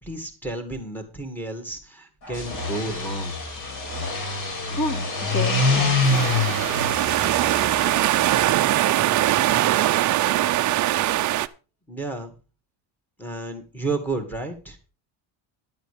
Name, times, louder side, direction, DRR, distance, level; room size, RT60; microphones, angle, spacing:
voice 1, 0.0-3.4 11.9-12.3 13.2-14.8, right 3 dB, 5° left, 6 dB, 2.2 m, -32 dB
sound 1, 2.3-8.5, left 3 dB, 50° left, 4.7 m, -26 dB
voice 2, 4.0-4.4 4.6-6.5, left 1 dB, 30° left, 0 dB, 2.3 m, -32 dB
sound 2, 6.0-11.5, right 14 dB, 40° right, 0.5 m, -21 dB
11.0 x 8.1 x 4.9 m, 0.33 s
cardioid pair, 155°, 49 cm